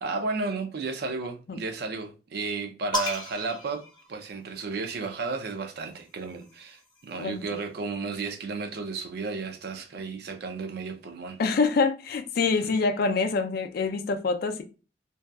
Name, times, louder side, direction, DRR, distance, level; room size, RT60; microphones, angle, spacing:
voice 1, 0.0-11.4, right 4 dB, 60° right, 0.4 m, -33 dB
sound 1, 2.9-4.7 5.8-7.5, equal, 25° left, 0.8 m, -36 dB
voice 2, 11.4-14.6, left 4 dB, 55° left, 0.4 m, -25 dB
2.6 x 2.2 x 2.3 m
head